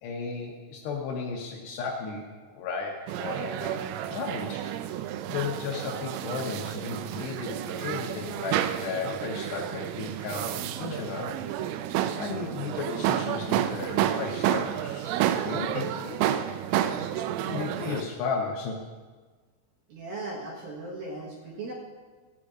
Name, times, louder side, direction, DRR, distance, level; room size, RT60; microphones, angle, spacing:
voice 1, 0.0-4.7 5.3-11.3 12.2-16.2 17.4-18.8, left 5 dB, 75° left, 0 dB, 2.7 m, -34 dB
sound 1, 3.1-18.0, right 11 dB, 85° right, 3.2 m, -30 dB
voice 2, 19.9-21.7, right 2 dB, 60° right, -3 dB, 2.7 m, -37 dB
15.0 x 5.2 x 8.7 m, 1.4 s
omnidirectional pair, 5.7 m